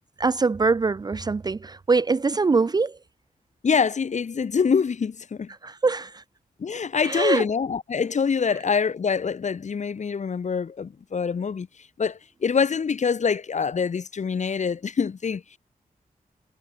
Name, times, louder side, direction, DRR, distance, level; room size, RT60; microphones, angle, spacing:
voice 1, 0.2-3.0 5.6-6.2 7.0-7.4, right 4 dB, 25° right, 0.6 m, -23 dB
voice 2, 3.6-5.5 6.6-11.7 12.0-15.6, left 6 dB, 50° left, 4.7 m, -25 dB
wide cardioid pair, 165°, 15 cm